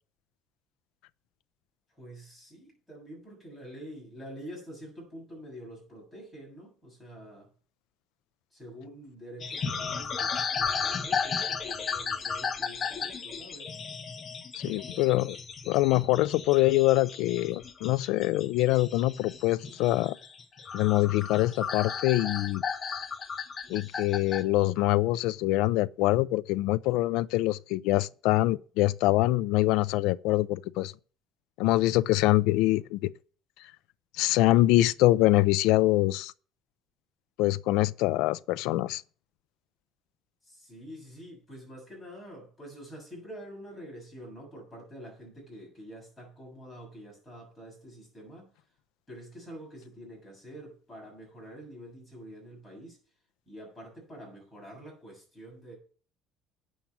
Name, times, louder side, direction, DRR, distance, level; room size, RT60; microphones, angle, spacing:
voice 1, 1.9-7.5 8.5-13.7 40.4-48.6 49.1-53.0 53.5-55.7, equal, 5° left, 7.3 m, -46 dB
sound 1, 9.4-24.4, left 6 dB, 25° left, 1.1 m, -34 dB
voice 2, 14.5-15.4 15.7-20.2 20.7-22.6 23.7-30.9 31.6-33.1 34.2-36.3 37.4-39.0, left 17 dB, 75° left, 0.5 m, -24 dB
9.2 x 7.3 x 7.2 m
cardioid pair, 170°, 0 cm